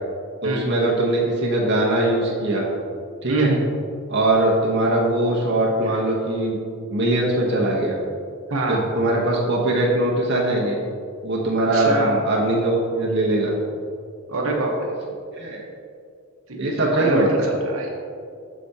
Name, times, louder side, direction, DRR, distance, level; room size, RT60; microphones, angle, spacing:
voice 1, 0.4-2.7 3.2-3.5 4.1-6.6 6.9-8.0 8.7-10.8 11.2-13.5 15.3-15.6 16.6-17.5, right 1 dB, 50° right, -3 dB, 0.9 m, -21 dB
voice 2, 3.3-3.6 8.5-8.8 11.7-12.2 14.3-14.9 16.5-17.9, right 2 dB, 75° right, 0 dB, 1.0 m, -24 dB
8.2 x 5.7 x 2.8 m, 2.3 s
head